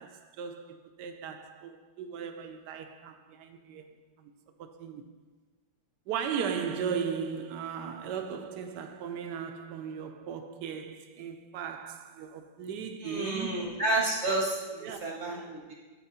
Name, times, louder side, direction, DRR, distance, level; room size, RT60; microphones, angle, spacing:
voice 1, 0.0-4.3 4.6-5.0 6.1-13.8 14.8-15.0 15.3-15.6, right 7 dB, 80° right, 0.9 m, -37 dB
voice 2, 13.0-15.7, right 2 dB, 50° right, 0.8 m, -31 dB
11.5 x 4.5 x 4.2 m
omnidirectional pair, 2.4 m